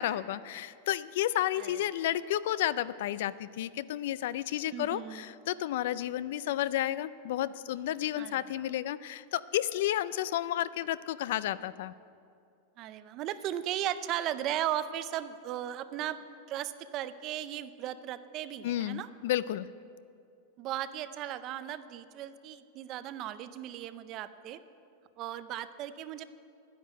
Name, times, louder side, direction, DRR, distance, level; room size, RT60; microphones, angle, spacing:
voice 1, 0.0-11.9 18.6-19.7, left 13 dB, 55° left, 17 dB, 0.3 m, -32 dB
voice 2, 4.7-5.2 8.2-8.4 12.8-16.2 16.5-19.1 20.6-24.6 25.2-26.2, right 11 dB, 30° right, 13 dB, 0.4 m, -36 dB
11.0 x 10.0 x 7.7 m, 2.5 s
supercardioid pair, 175°, 0 cm